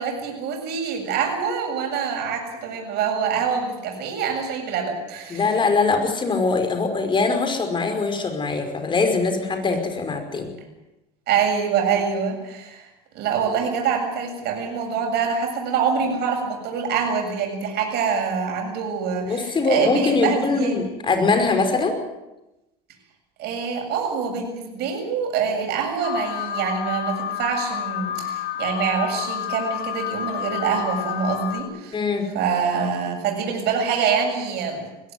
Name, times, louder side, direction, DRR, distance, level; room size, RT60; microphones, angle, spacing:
voice 1, 0.0-5.4 11.3-12.9 13.1-20.8 23.4-32.0 32.3-34.9, right 6 dB, 55° right, 2 dB, 7.7 m, -25 dB
voice 2, 5.3-10.5 19.3-22.0 31.9-32.3, left 4 dB, 25° left, 6 dB, 5.0 m, -22 dB
Alarm, 26.0-31.6, left 11 dB, 55° left, 2.6 m, -29 dB
21.0 x 16.0 x 9.5 m, 0.98 s
supercardioid pair, 110°, 20 cm